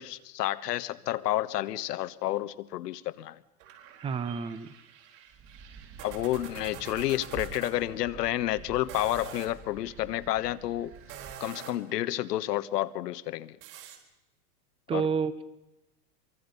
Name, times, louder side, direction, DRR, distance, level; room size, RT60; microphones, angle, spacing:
voice 1, 0.0-3.4 6.0-10.9 11.4-13.6 14.9-15.1, left 14 dB, 80° left, 15 dB, 1.3 m, -30 dB
sound 1, 3.6-7.7 8.8-9.5 10.9-11.9 13.6-14.0, right 9 dB, 55° right, 4.4 m, -46 dB
voice 2, 4.0-4.7 14.9-15.4, right 6 dB, 10° right, 15 dB, 0.7 m, -29 dB
sound 2, 5.3-11.4, right 5 dB, 30° right, 2.1 m, -48 dB
26.0 x 23.5 x 5.5 m, 0.95 s
supercardioid pair, 150°, 48 cm